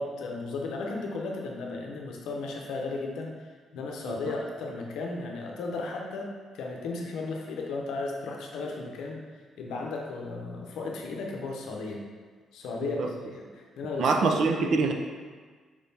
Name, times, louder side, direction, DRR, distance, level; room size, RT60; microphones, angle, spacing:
voice 1, 0.0-3.3 3.7-9.2 9.6-12.0 12.5-14.4, left 3 dB, 85° left, 0 dB, 0.6 m, -35 dB
voice 2, 14.0-14.9, right 4 dB, 65° right, 3 dB, 0.4 m, -25 dB
4.9 x 3.5 x 2.7 m, 1.5 s
cardioid pair, 90°, 0 cm